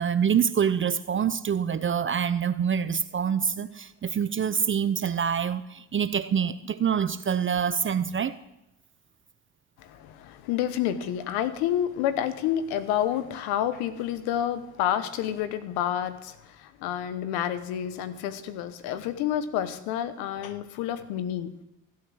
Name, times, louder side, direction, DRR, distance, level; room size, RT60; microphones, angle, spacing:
voice 1, 0.0-8.3, right 7 dB, 35° right, 13 dB, 0.6 m, -26 dB
voice 2, 9.8-21.5, left 10 dB, 85° left, 12 dB, 1.1 m, -29 dB
14.5 x 8.5 x 6.3 m, 0.89 s
supercardioid pair, 70°, 36 cm